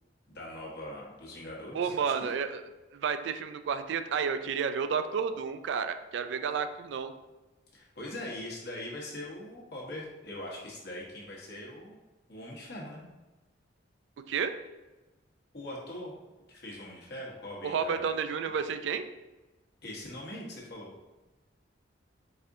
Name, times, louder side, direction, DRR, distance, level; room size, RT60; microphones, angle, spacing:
voice 1, 0.3-2.3 7.7-12.0 12.3-13.0 15.5-16.1 16.5-18.1 19.8-20.9, left 1 dB, 60° left, -3 dB, 1.0 m, -41 dB
voice 2, 1.7-2.6 2.9-7.1 14.3-14.5 17.6-19.1, right 6 dB, 70° right, 9 dB, 0.3 m, -31 dB
4.1 x 3.6 x 2.6 m, 1.1 s
head